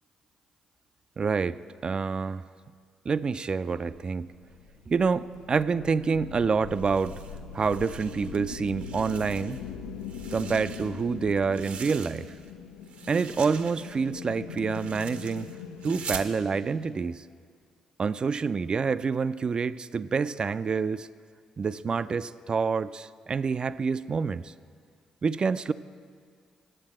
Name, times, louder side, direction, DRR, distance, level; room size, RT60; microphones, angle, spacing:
voice 1, 1.2-2.4 3.1-4.3 4.9-7.2 7.5-9.6 10.3-12.3 13.1-15.5 15.8-17.2 18.0-21.1 21.6-24.5 25.2-25.7, right 5 dB, 40° right, 15 dB, 0.3 m, -27 dB
sound 1, 3.9-17.0, left 6 dB, 90° left, 0.4 m, -42 dB
sound 2, 6.7-8.4 8.7-9.7 10.0-12.5 12.8-16.3, right 6 dB, 65° right, 0.7 m, -43 dB
8.8 x 7.2 x 8.6 m, 2.1 s
hypercardioid pair, 45°, 2 cm